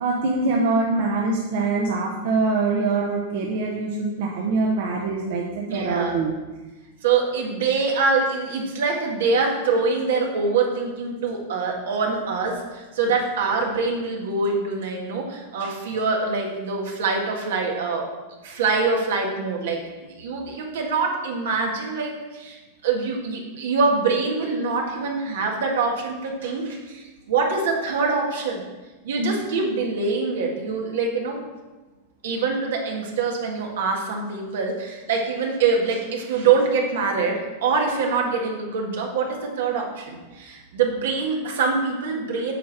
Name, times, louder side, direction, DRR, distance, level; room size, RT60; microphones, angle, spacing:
voice 1, 0.0-6.4 29.2-29.3, right 3 dB, 65° right, -2 dB, 1.1 m, -24 dB
voice 2, 5.7-6.2 7.0-18.1 18.4-28.6 29.0-31.4 32.2-42.5, right 4 dB, 85° right, 0 dB, 1.8 m, -24 dB
8.2 x 4.6 x 5.9 m, 1.2 s
supercardioid pair, 135°, 0 cm